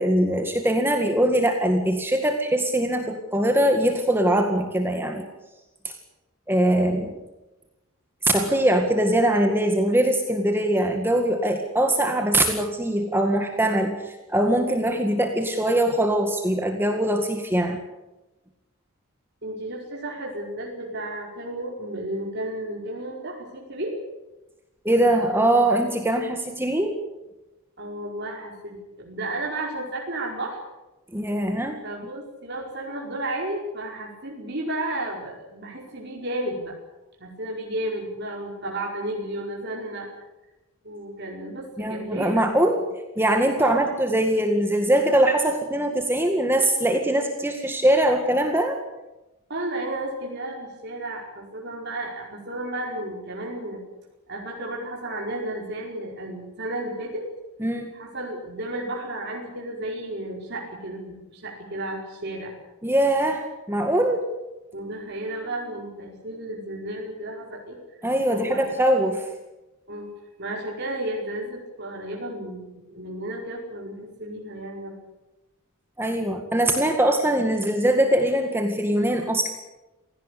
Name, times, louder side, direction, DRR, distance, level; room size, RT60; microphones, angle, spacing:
voice 1, 0.0-5.3 5.8-6.0 6.5-7.2 8.2-17.8 24.9-27.0 31.1-31.8 41.8-42.8 43.2-48.8 57.6-57.9 62.8-64.3 68.0-69.3 76.0-79.5, right 1 dB, 10° right, 4 dB, 1.9 m, -22 dB
voice 2, 19.4-23.9 27.8-30.6 31.8-36.7 37.2-40.1 40.8-42.5 43.6-43.9 49.5-53.8 54.3-57.2 57.9-62.5 64.7-67.8 68.3-68.7 69.9-70.1 70.4-74.9, right 1 dB, 50° right, -2 dB, 5.0 m, -33 dB
27.0 x 17.5 x 8.4 m, 1.0 s
head